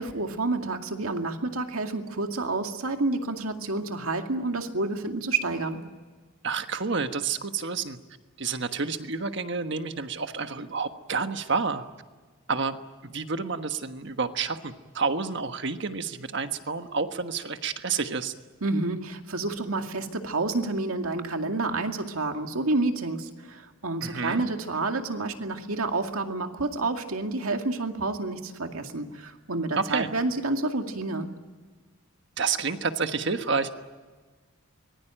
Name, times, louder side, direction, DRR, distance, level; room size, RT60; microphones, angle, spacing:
voice 1, 0.0-5.8 18.6-31.3, right 2 dB, 85° right, 5 dB, 2.2 m, -29 dB
voice 2, 6.4-8.0 8.4-11.8 12.5-12.8 13.0-18.3 24.0-24.4 29.8-30.1 32.4-33.7, right 4 dB, 55° right, 8 dB, 1.4 m, -29 dB
24.5 x 21.0 x 9.0 m, 1.4 s
head